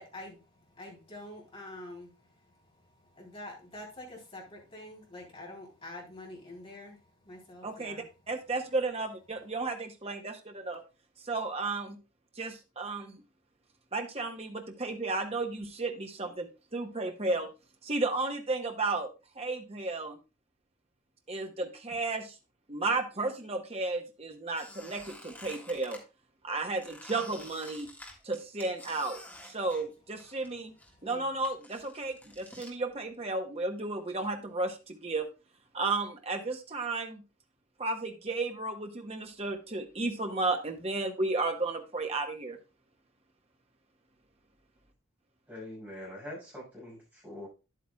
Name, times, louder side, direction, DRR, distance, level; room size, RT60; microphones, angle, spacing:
voice 1, 0.0-8.1 30.9-31.3, left 1 dB, 25° left, -3 dB, 3.5 m, -47 dB
voice 2, 7.6-10.8 11.2-12.0 12.4-13.2 13.9-17.5 17.8-19.1 19.4-20.2 21.3-22.4 22.7-26.0 26.4-27.9 28.2-30.7 31.0-35.3 35.7-37.2 37.8-42.6, right 3 dB, 30° right, 4 dB, 1.0 m, -33 dB
Squeak, 24.5-26.0 26.8-30.5 30.8-32.7, left 1 dB, 10° left, 1.7 m, -49 dB
voice 3, 45.5-47.5, left 1 dB, 10° right, -5 dB, 5.8 m, -44 dB
10.0 x 8.4 x 2.3 m, 0.29 s
head